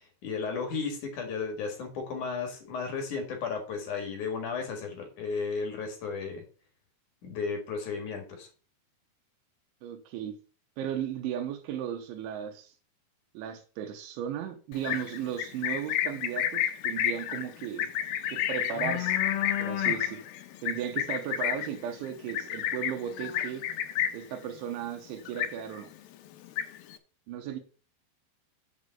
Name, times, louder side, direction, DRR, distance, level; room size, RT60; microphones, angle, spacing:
voice 1, 0.2-6.4 7.2-8.5, left 5 dB, 55° left, 2.7 m, -34 dB
voice 2, 9.8-10.4 10.8-12.7 13.4-17.9 18.3-19.2 19.6-20.2 20.6-23.6 24.1-25.9 27.3-27.6, right 9 dB, 90° right, 3.4 m, -35 dB
Livestock farm animals working animals, 14.7-24.3 24.7-25.0 25.2-25.9 26.3-27.0, left 11 dB, 90° left, 2.0 m, -30 dB
7.3 x 5.4 x 6.9 m
omnidirectional pair, 5.4 m